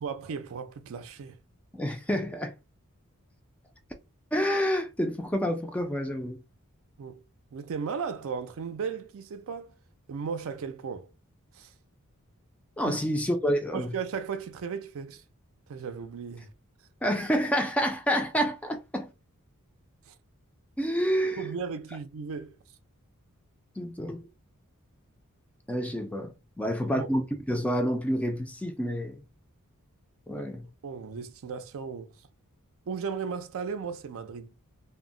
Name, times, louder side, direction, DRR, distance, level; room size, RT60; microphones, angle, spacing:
voice 1, 0.0-1.4 7.0-7.2 7.5-9.7 10.1-11.1 11.5-11.7 12.9-13.0 13.7-15.2 15.7-16.5 20.1-20.2 21.4-22.5 26.6-27.1 30.4-30.5 30.8-32.1 32.9-34.5, right 6 dB, 65° right, 0.4 m, -36 dB
voice 2, 1.7-2.5 4.3-6.4 12.8-13.9 17.0-19.1 20.8-21.5 23.8-24.2 25.7-29.2 30.3-30.7, equal, 5° left, 0.3 m, -28 dB
2.1 x 2.0 x 3.6 m
head